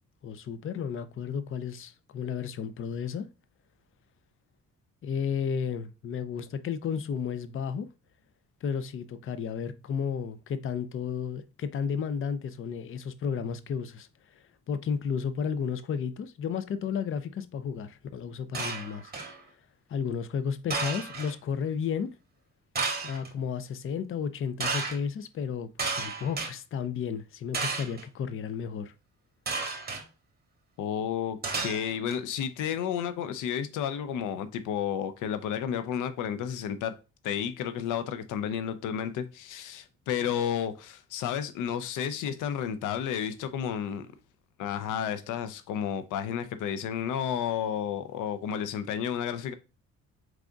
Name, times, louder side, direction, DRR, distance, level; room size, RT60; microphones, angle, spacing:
voice 1, 0.2-3.3 5.0-7.9 8.6-14.1 14.7-19.1 19.9-22.1 23.0-28.9, left 7 dB, 45° left, 0.5 m, -33 dB
sound 1, 18.5-19.4 20.7-21.3 22.7-23.3 24.6-25.0 25.8-26.5 27.5-28.0 29.5-30.0 31.4-32.2, right 4 dB, 30° right, 1.4 m, -32 dB
voice 2, 30.8-36.9 37.2-44.1 44.6-49.5, left 8 dB, 90° left, 0.6 m, -32 dB
4.7 x 3.8 x 2.3 m
cardioid pair, 90°, 30 cm